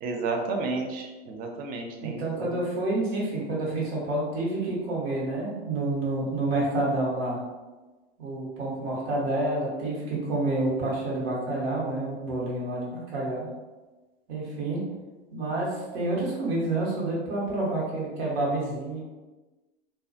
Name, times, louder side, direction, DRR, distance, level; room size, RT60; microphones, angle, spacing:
voice 1, 0.0-2.6, right 3 dB, 30° right, 3 dB, 0.4 m, -32 dB
voice 2, 2.0-7.4 8.2-13.5 14.3-14.8 15.3-19.0, right 2 dB, 70° right, -4 dB, 1.0 m, -28 dB
2.3 x 2.2 x 2.5 m, 1.2 s
hypercardioid pair, 95°, 31 cm